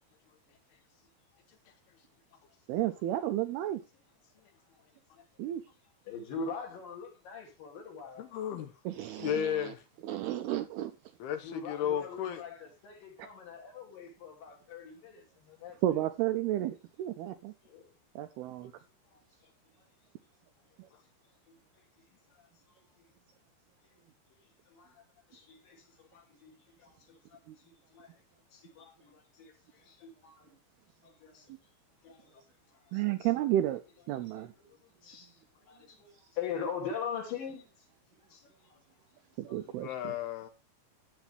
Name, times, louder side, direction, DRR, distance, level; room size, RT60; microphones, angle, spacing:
voice 1, 2.7-3.8 5.4-5.6 8.9-9.7 10.0-10.9 13.2-13.3 15.8-17.5 18.2-18.7 27.5-27.6 32.9-33.8 34.1-34.5 39.4-40.1, right 13 dB, 80° right, 2.3 m, -32 dB
voice 2, 6.1-8.3 11.4-16.0 17.6-17.9 19.1-19.5 22.3-22.4 24.7-25.0 25.3-26.5 26.8-27.4 27.9-28.1 28.5-30.5 31.0-31.5 32.0-32.4 32.9-33.0 34.4-34.7 35.0-35.3 35.7-37.7 38.3-38.8 39.5-39.6, left 6 dB, 55° left, 4.0 m, -42 dB
voice 3, 8.2-8.7 9.2-9.8 11.2-12.4 20.9-21.0 39.8-40.5, left 10 dB, 75° left, 2.6 m, -34 dB
13.0 x 9.0 x 3.4 m
omnidirectional pair, 5.1 m